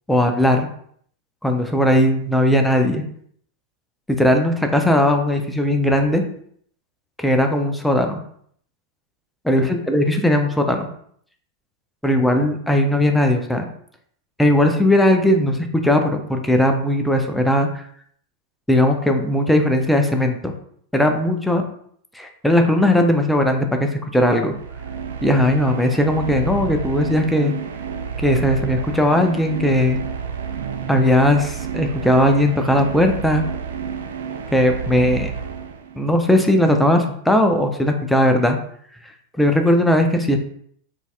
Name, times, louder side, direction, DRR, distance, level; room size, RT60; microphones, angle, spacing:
voice 1, 0.1-0.7 1.4-3.0 4.1-6.2 7.2-8.2 9.5-10.9 12.0-13.6 14.4-17.7 18.7-20.5 20.9-21.6 22.1-24.5 25.2-27.5 28.2-30.0 30.9-33.4 34.5-35.3 35.9-38.6 39.4-40.4, left 1 dB, 5° left, 4 dB, 0.4 m, -18 dB
sound 1, 24.4-36.1, right 7 dB, 65° right, 0.3 m, -30 dB
3.9 x 2.4 x 2.3 m, 0.63 s
figure-of-eight pair, 90°, 0 cm